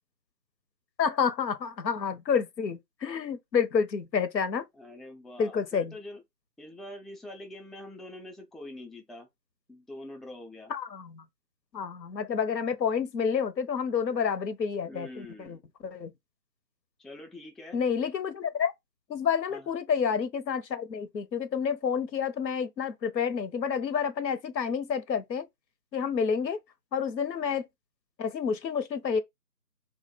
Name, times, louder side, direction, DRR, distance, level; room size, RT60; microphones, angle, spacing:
voice 1, 1.0-4.6 5.4-5.9 10.7-11.2 11.7-16.1 17.7-18.7 19.1-25.5 25.9-26.6 26.9-27.6 28.2-29.2, left 6 dB, 90° left, 0.6 m, -29 dB
voice 2, 4.7-6.2 6.6-9.3 9.7-10.7 14.9-15.6 17.0-17.8 19.5-19.7, left 1 dB, ahead, 0.3 m, -44 dB
2.2 x 2.0 x 3.1 m
figure-of-eight pair, 165°, 49 cm